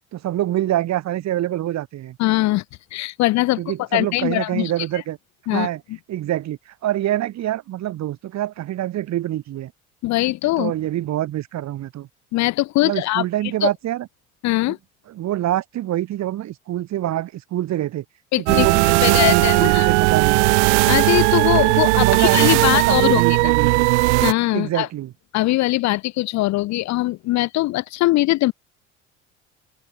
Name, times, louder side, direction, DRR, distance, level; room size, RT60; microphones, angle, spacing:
voice 1, 0.1-2.2 3.6-5.2 5.5-5.8 6.1-9.7 10.6-12.1 12.8-14.1 14.7-14.8 15.1-18.0 18.4-20.5 21.9-23.9 24.5-25.1, right 13 dB, 45° right, 1.6 m, -25 dB
voice 2, 2.2-2.6 2.9-3.6 3.9-4.7 5.5-5.7 10.0-10.7 12.3-13.2 13.6-13.7 14.4-14.8 18.3-18.7 19.0-19.9 20.9-23.2 24.2-24.9 25.3-28.5, left 18 dB, 50° left, 0.7 m, -21 dB
sound 1, 18.5-24.3, right 24 dB, 70° right, 0.5 m, -17 dB
figure-of-eight pair, 60°, 37 cm